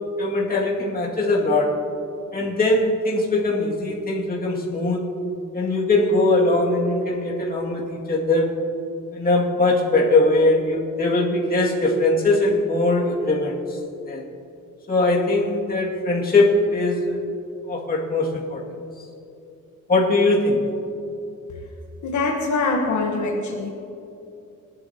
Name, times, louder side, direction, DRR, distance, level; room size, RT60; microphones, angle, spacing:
voice 1, 0.2-1.8 2.3-5.0 5.5-8.6 9.1-13.6 14.0-14.2 14.9-17.2 17.7-18.6 19.9-20.6, left 2 dB, 30° left, -3 dB, 2.3 m, -21 dB
voice 2, 22.0-23.7, left 3 dB, 65° left, 0 dB, 1.4 m, -23 dB
22.0 x 11.5 x 2.9 m, 2.7 s
cardioid pair, 130°, 32 cm